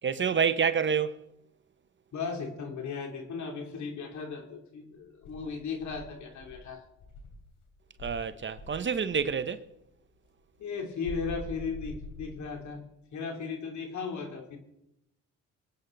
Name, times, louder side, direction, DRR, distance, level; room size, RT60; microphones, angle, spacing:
voice 1, 0.0-1.2 8.0-9.6, right 6 dB, 40° right, 0.9 m, -28 dB
voice 2, 2.1-6.8 10.6-12.8 13.1-14.6, left 5 dB, 70° left, 3.2 m, -36 dB
Insect, 5.2-7.5 8.0-9.4 11.0-12.7, left 2 dB, 85° left, 3.4 m, -44 dB
24.5 x 9.3 x 4.0 m
cardioid pair, 90°, 30 cm